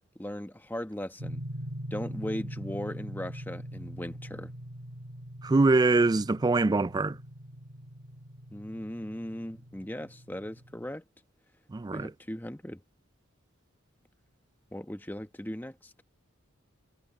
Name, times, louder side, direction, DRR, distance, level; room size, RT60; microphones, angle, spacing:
voice 1, 0.2-1.4 1.9-4.5 8.5-11.0 11.9-12.8 14.7-15.9, left 1 dB, 10° left, 1.1 m, -38 dB
sound 1, 1.2-10.9, equal, 70° right, 4.9 m, -42 dB
voice 2, 5.4-7.1 11.7-12.1, right 3 dB, 20° right, 0.3 m, -23 dB
head